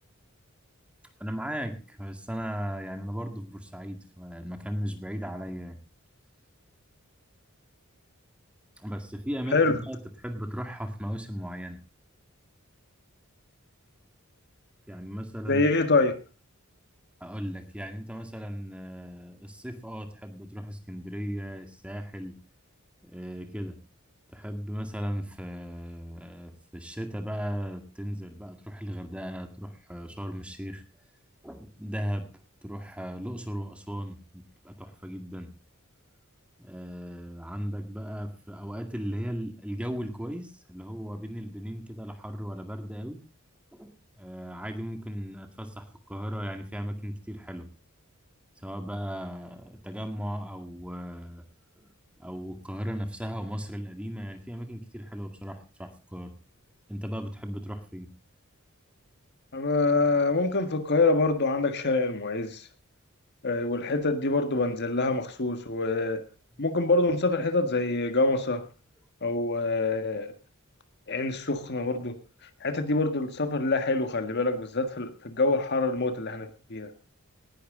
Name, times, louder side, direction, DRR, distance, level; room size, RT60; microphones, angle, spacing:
voice 1, 1.2-5.8 8.8-11.8 14.9-15.7 17.2-22.3 23.0-23.8 24.3-30.8 31.4-32.3 32.6-35.5 36.6-43.2 43.7-47.7 48.6-51.4 51.8-51.9 52.2-56.4 56.9-58.1, equal, 5° right, 6 dB, 2.0 m, -36 dB
voice 2, 15.5-16.1 59.5-62.6 63.4-66.2 66.6-68.6 69.2-70.3 71.1-72.1 72.6-76.9, left 3 dB, 50° left, 8 dB, 1.7 m, -25 dB
19.0 x 11.5 x 3.8 m, 0.32 s
head